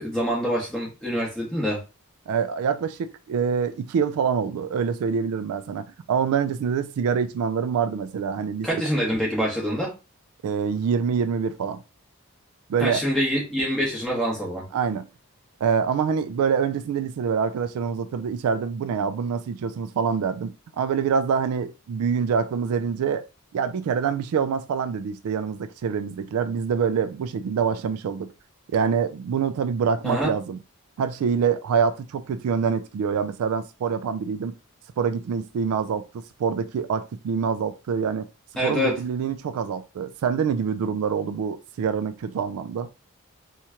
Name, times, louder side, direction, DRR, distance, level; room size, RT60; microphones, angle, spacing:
voice 1, 0.0-1.8 8.6-9.9 12.8-14.7 30.0-30.3 38.6-39.0, equal, 5° left, 1.4 m, -25 dB
voice 2, 2.3-8.8 10.4-11.8 12.7-13.0 14.7-15.1 15.6-23.2 23.5-28.3 28.7-30.6 31.0-34.6 35.0-38.3 38.6-42.9, right 6 dB, 75° right, 0.3 m, -25 dB
4.3 x 2.4 x 2.8 m
head